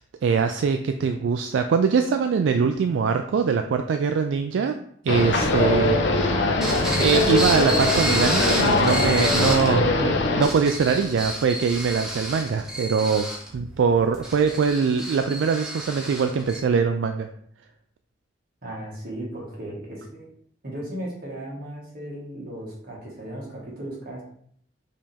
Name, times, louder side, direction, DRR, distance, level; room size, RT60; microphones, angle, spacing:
voice 1, 0.0-4.7 5.0-6.4 7.0-13.3 13.5-17.3, right 5 dB, 80° right, 7 dB, 0.3 m, -23 dB
sound 1, 5.1-10.4, left 2 dB, 70° left, 0.7 m, -22 dB
sound 2, 6.6-9.7 10.2-16.6, right 1 dB, 5° right, 0.9 m, -30 dB
voice 2, 18.6-20.3 20.6-24.2, right 1 dB, 55° right, -4 dB, 1.7 m, -36 dB
5.2 x 2.9 x 3.5 m, 0.65 s
head